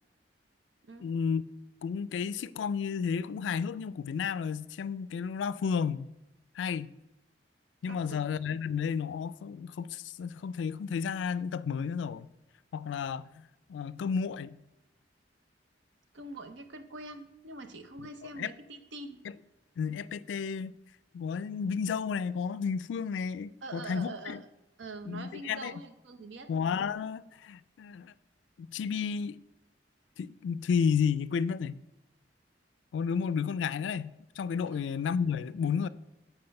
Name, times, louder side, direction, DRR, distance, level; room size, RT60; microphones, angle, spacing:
voice 1, 1.0-1.4 1.8-6.1 6.5-6.9 7.8-12.3 12.7-14.6 18.4-18.5 19.8-20.7 21.1-24.4 25.1-25.7 26.5-28.1 28.6-29.4 30.2-31.8 32.9-35.9, left 6 dB, 80° left, 0.3 m, -32 dB
voice 2, 7.9-8.2 16.1-19.2 23.6-24.5 24.8-26.5 34.6-34.8, right 2 dB, 80° right, 0.7 m, -44 dB
7.7 x 4.4 x 5.3 m
head